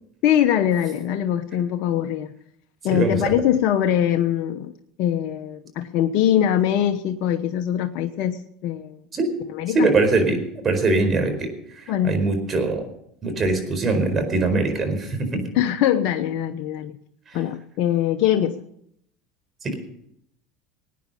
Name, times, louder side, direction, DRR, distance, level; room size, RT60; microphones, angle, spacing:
voice 1, 0.2-2.3 2.8-4.7 5.0-9.0 9.5-9.9 11.9-12.2 15.5-16.9 17.3-18.6, left 10 dB, 60° left, 5 dB, 1.0 m, -22 dB
voice 2, 2.9-3.4 9.1-9.3 9.7-12.9 13.2-15.3 17.3-17.4 19.6-19.7, right 3 dB, 30° right, 6 dB, 4.5 m, -22 dB
19.5 x 9.5 x 5.5 m, 0.73 s
supercardioid pair, 95°, 0 cm